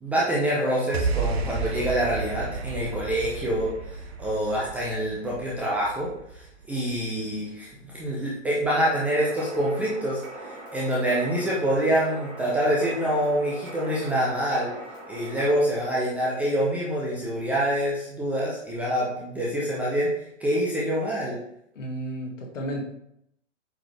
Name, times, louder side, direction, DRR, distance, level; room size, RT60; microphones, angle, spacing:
voice 1, 0.0-3.7 4.2-6.1 6.3-10.2 10.7-14.7 15.1-20.1 20.4-21.4, equal, 5° right, -6 dB, 0.5 m, -26 dB
sound 1, 0.9-7.4, right 4 dB, 55° right, 1.0 m, -32 dB
sound 2, 8.7-15.6, right 2 dB, 25° right, 2.1 m, -41 dB
voice 2, 21.7-22.8, right 1 dB, 70° left, 0 dB, 2.1 m, -32 dB
7.8 x 3.9 x 3.3 m, 0.75 s
hypercardioid pair, 130°, 39 cm